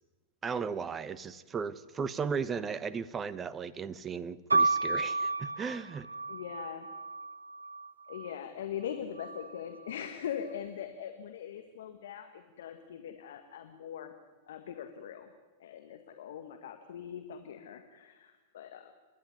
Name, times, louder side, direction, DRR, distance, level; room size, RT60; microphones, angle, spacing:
voice 1, 0.4-6.1, right 6 dB, 20° right, 16 dB, 1.1 m, -36 dB
sound 1, 4.5-8.3 9.2-9.9, right 3 dB, 90° right, 0.6 m, -32 dB
voice 2, 6.3-6.9 8.1-14.2 14.5-15.3 15.6-18.9, left 9 dB, 65° left, 7 dB, 1.7 m, -41 dB
28.5 x 11.5 x 9.8 m, 1.2 s
hypercardioid pair, 100°, 0 cm